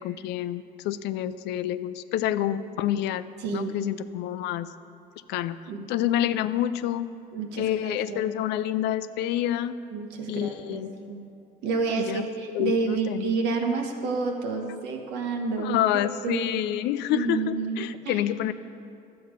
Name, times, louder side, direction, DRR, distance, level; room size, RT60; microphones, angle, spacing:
voice 1, 0.0-3.3 3.5-4.7 5.3-5.6 5.9-7.1 7.6-9.8 10.3-10.9 12.0-13.2 15.6-18.5, left 12 dB, 85° left, 14 dB, 0.4 m, -28 dB
voice 2, 3.4-3.7 5.7-5.8 7.3-8.3 9.9-11.2 11.6-16.5 17.1-18.2, right 4 dB, 90° right, 3 dB, 1.3 m, -29 dB
11.5 x 7.8 x 5.1 m, 2.7 s
cardioid pair, 110°, 17 cm